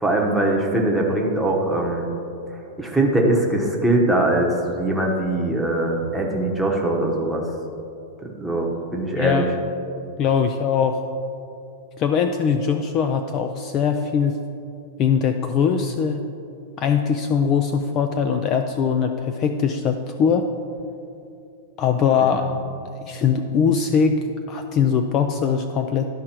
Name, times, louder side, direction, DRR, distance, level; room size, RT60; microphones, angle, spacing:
voice 1, 0.0-2.1 2.8-7.4 8.2-9.5, right 1 dB, ahead, -2 dB, 1.0 m, -21 dB
voice 2, 10.2-11.0 12.0-14.4 15.0-16.2 16.8-20.5 21.8-22.5 23.1-26.1, left 6 dB, 30° left, 6 dB, 0.4 m, -21 dB
12.0 x 4.9 x 4.4 m, 2.7 s
supercardioid pair, 150°, 0 cm